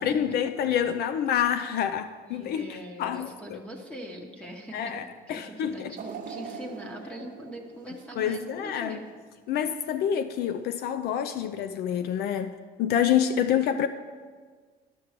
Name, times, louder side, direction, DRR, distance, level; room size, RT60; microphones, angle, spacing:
voice 1, 0.0-3.6 4.7-5.9 8.2-9.0 9.5-12.5 12.8-13.9, left 9 dB, 70° left, 0.4 m, -27 dB
voice 2, 2.2-4.9 5.3-9.0, equal, 5° left, 1.0 m, -42 dB
sound 1, 6.0-9.1 9.6-9.7 10.7-10.8, right 6 dB, 55° right, 0.8 m, -42 dB
11.0 x 5.9 x 4.9 m
cardioid pair, 110°, 17 cm